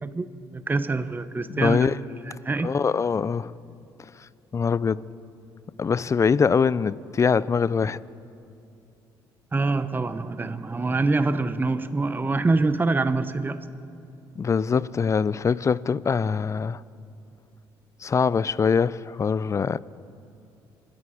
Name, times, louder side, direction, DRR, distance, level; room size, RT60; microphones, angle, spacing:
voice 1, 0.0-1.9 2.4-2.7 9.5-13.6, right 3 dB, 20° right, 0.7 m, -25 dB
voice 2, 1.5-2.0 2.3-3.6 4.5-5.0 5.8-8.0 14.4-16.8 18.0-19.8, left 6 dB, 30° left, 0.4 m, -23 dB
24.5 x 10.0 x 5.0 m
supercardioid pair, 65°, 10 cm